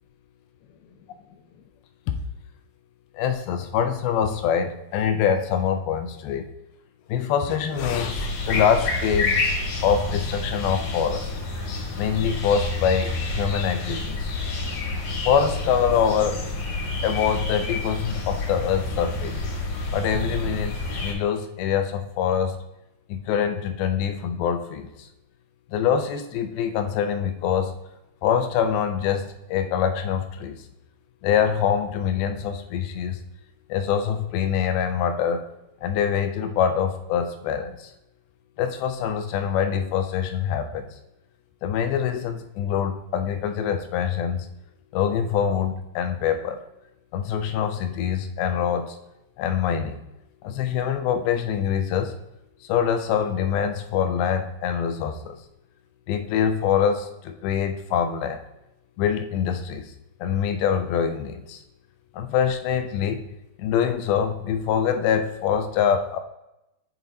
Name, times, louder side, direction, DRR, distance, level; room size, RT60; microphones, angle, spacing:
voice 1, 3.1-6.5 7.1-9.4 9.8-11.3 12.0-14.3 15.3-16.4 17.0-19.4 19.9-22.5 23.1-25.1 25.7-27.7 28.2-30.6 31.2-33.2 33.7-35.5 35.8-37.9 38.6-40.9 41.6-44.5 44.9-46.6 47.1-49.0 49.4-50.0 50.4-52.1 52.6-55.4 56.1-58.4 59.0-59.9 60.2-61.6 62.1-63.2 63.6-66.2, left 8 dB, 80° left, 8 dB, 2.4 m, -24 dB
sound 1, 7.8-21.1, left 3 dB, 65° left, 3.3 m, -28 dB
7.6 x 4.0 x 4.0 m, 0.89 s
omnidirectional pair, 4.7 m